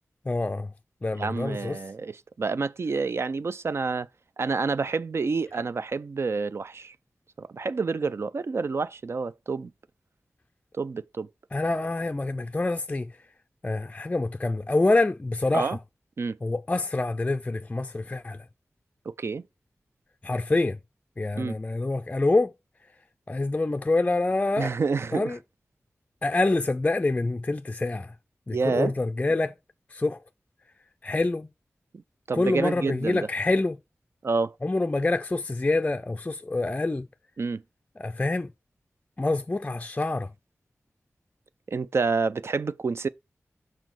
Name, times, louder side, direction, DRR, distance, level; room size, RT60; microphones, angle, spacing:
voice 1, 0.3-0.7 1.0-1.8 11.5-13.1 13.6-15.8 16.4-18.4 20.2-20.8 21.2-22.5 23.3-24.7 25.1-25.4 26.2-28.1 28.5-29.5 29.9-30.2 31.0-31.5 32.3-33.8 34.6-37.1 38.0-38.5 39.2-40.3, left 2 dB, 25° left, 0.4 m, -26 dB
voice 2, 1.2-4.1 4.4-6.9 7.4-9.7 10.8-11.3 15.5-15.8 16.2-16.4 19.1-19.4 21.4-21.6 24.6-25.3 28.5-28.9 32.3-33.3 34.2-34.5 37.4-37.6 41.7-43.1, right 4 dB, 60° right, 0.4 m, -28 dB
6.1 x 4.3 x 4.7 m
wide cardioid pair, 75°, 5 cm